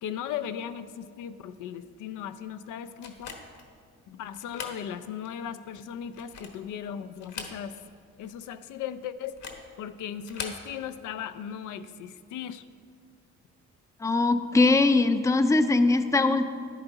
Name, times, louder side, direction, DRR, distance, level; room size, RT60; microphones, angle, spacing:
voice 1, 0.0-3.3 4.1-7.8 8.2-9.4 9.8-12.6, left 9 dB, 80° left, 11 dB, 0.5 m, -37 dB
Lock on door, 3.0-3.7 4.3-4.8 5.3-5.4 6.0-6.7 7.2-7.9 8.2-8.3 9.2-9.7 10.2-10.7, left 5 dB, 65° left, 1.3 m, -40 dB
voice 2, 14.0-16.4, left 3 dB, 10° left, 10 dB, 0.5 m, -21 dB
9.9 x 9.4 x 3.9 m, 2.2 s
cardioid pair, 90°, 30 cm